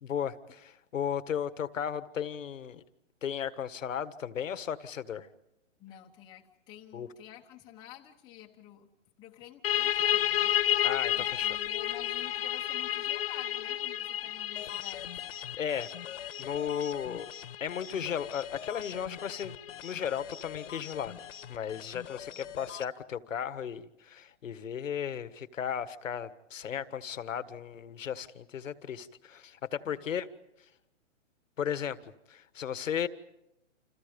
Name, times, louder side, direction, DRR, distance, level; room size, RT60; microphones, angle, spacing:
voice 1, 0.0-2.8 3.2-5.3 6.9-7.1 10.8-11.5 15.6-15.9 16.4-17.3 17.6-19.5 19.8-21.1 21.5-30.3 31.6-33.1, left 8 dB, 85° left, 12 dB, 1.7 m, -35 dB
voice 2, 5.8-8.9 9.2-10.5 11.1-15.1 22.3-22.6 29.8-30.1, left 12 dB, 10° left, -1 dB, 1.0 m, -50 dB
sound 1, 9.6-21.0, left 11 dB, 50° left, 0.9 m, -32 dB
sound 2, 14.5-22.9, left 10 dB, 70° left, 1.5 m, -45 dB
29.5 x 28.0 x 5.3 m, 0.84 s
hypercardioid pair, 160°, 37 cm